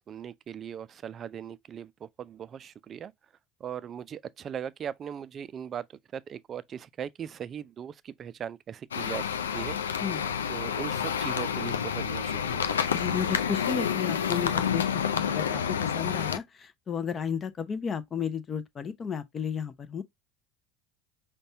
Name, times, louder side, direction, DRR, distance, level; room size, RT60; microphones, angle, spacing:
voice 1, 0.0-1.9 2.2-3.1 3.6-5.8 6.1-9.3 9.5-9.8 10.5-12.6, right 8 dB, 40° right, 0.3 m, -39 dB
sound 1, 8.9-16.4, left 7 dB, 85° left, 0.4 m, -29 dB
voice 2, 12.9-20.0, left 7 dB, 30° left, 0.5 m, -33 dB
5.3 x 2.2 x 2.6 m
hypercardioid pair, 75°, 0 cm